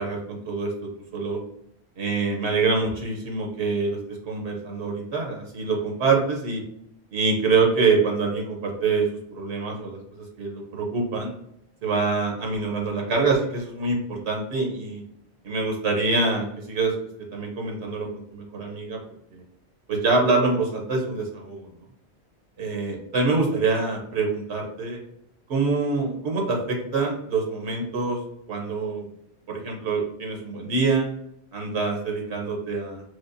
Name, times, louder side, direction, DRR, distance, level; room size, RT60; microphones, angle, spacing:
voice 1, 0.0-1.4 2.0-6.6 7.1-10.0 10.4-11.3 11.8-15.0 15.4-17.0 17.3-19.0 19.3-19.4 19.9-21.7 22.6-25.0 25.5-28.2 28.5-29.1 29.5-31.0 31.5-33.0, right 4 dB, 80° right, 0 dB, 1.1 m, -25 dB
4.8 x 2.0 x 2.6 m, 0.74 s
omnidirectional pair, 1.1 m